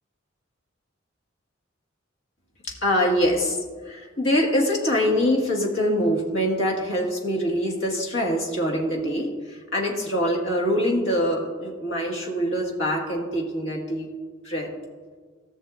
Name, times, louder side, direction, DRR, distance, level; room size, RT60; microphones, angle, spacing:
voice 1, 2.8-3.6 3.9-14.1 14.4-14.7, equal, 70° left, -1 dB, 1.8 m, -24 dB
18.5 x 6.4 x 2.5 m, 1.5 s
head